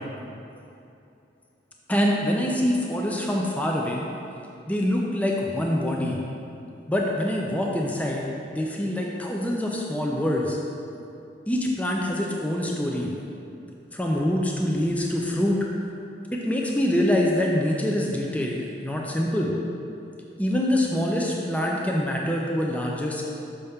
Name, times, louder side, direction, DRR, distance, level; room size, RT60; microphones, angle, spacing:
voice 1, 1.9-4.0 4.7-6.2 6.9-10.6 11.5-13.1 13.9-15.6 16.3-19.5 20.4-23.2, left 1 dB, 10° left, -2 dB, 0.5 m, -25 dB
6.6 x 5.6 x 3.6 m, 2.6 s
head